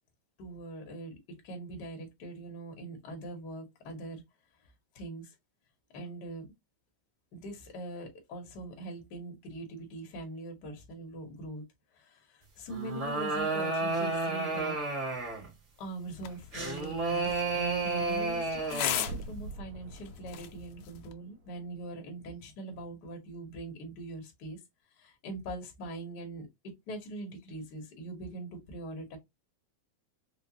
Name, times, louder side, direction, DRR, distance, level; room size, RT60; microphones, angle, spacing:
voice 1, 0.4-1.2 1.4-4.2 4.9-5.3 5.9-6.5 7.3-11.6 11.9-14.8 15.8-24.6 25.0-26.5 26.9-29.2, right 2 dB, 70° left, 0.9 m, -42 dB
sound 1, 12.7-15.5 16.5-19.1, right 3 dB, 40° right, 1.0 m, -31 dB
sound 2, 16.1-21.1, left 11 dB, 85° left, 1.4 m, -39 dB
sound 3, 19.0-21.9 22.2-22.3, right 2 dB, 70° right, 2.0 m, -45 dB
5.0 x 2.0 x 2.7 m
omnidirectional pair, 3.5 m